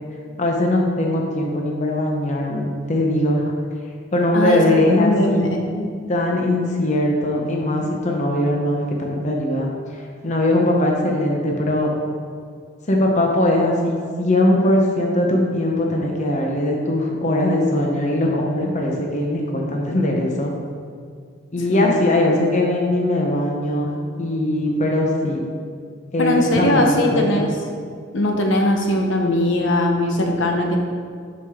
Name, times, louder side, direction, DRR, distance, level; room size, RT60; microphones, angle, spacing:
voice 1, 0.4-3.4 4.1-5.4 6.1-11.9 12.9-20.5 21.5-23.9 24.2-25.4 26.1-27.5, left 1 dB, 40° left, 0 dB, 0.8 m, -20 dB
voice 2, 4.3-5.9 21.7-22.1 26.2-27.5 28.1-30.8, left 1 dB, 70° left, 1 dB, 1.0 m, -20 dB
11.5 x 4.9 x 3.6 m, 2.1 s
head